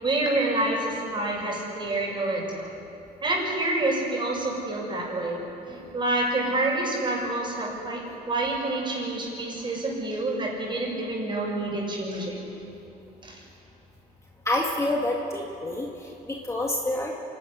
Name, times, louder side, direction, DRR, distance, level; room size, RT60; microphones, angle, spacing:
voice 1, 0.0-2.7 3.2-12.3 13.2-13.4, right 2 dB, 30° right, -2 dB, 6.8 m, -28 dB
voice 2, 14.5-17.1, left 1 dB, 15° left, -1 dB, 2.0 m, -28 dB
26.5 x 12.0 x 9.9 m, 2.9 s
cardioid pair, 110°, 17 cm